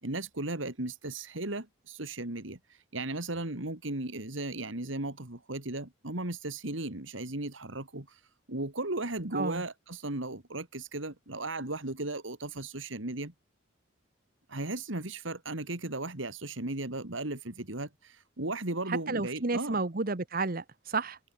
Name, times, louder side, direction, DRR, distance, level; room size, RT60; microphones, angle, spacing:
voice 1, 0.0-2.6 2.9-8.2 8.5-13.3 14.5-19.8, right 2 dB, 70° right, 2.9 m, -36 dB
voice 2, 9.3-9.6 18.9-21.2, right 3 dB, 45° right, 1.2 m, -31 dB
head